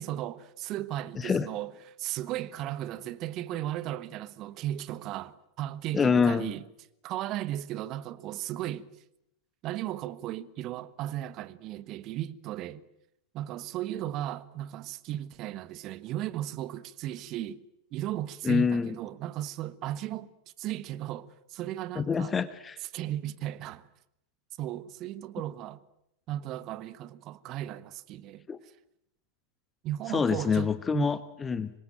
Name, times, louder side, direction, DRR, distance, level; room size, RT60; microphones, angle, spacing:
voice 1, 0.0-1.7 2.0-6.6 7.0-8.9 9.6-12.8 13.3-17.6 17.9-20.3 20.6-22.4 22.9-23.9 24.6-25.8 26.3-28.5 29.8-31.1, right 13 dB, 35° right, 1.4 m, -35 dB
voice 2, 1.2-1.5 5.9-6.5 18.4-18.9 22.0-22.8 28.5-28.6 30.1-31.7, left 6 dB, 15° left, 1.1 m, -26 dB
26.0 x 22.0 x 9.1 m
figure-of-eight pair, 90°, 0 cm